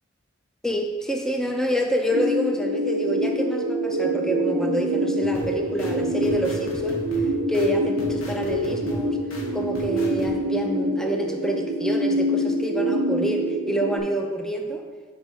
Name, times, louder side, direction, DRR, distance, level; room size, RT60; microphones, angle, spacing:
voice 1, 0.6-7.0 7.5-9.2 9.5-14.8, equal, 5° left, 3 dB, 0.3 m, -27 dB
sound 1, 2.1-14.0, equal, 75° right, 0.6 m, -25 dB
sound 2, 5.2-10.3, equal, 85° left, 1.0 m, -37 dB
4.7 x 4.0 x 5.2 m, 1.5 s
head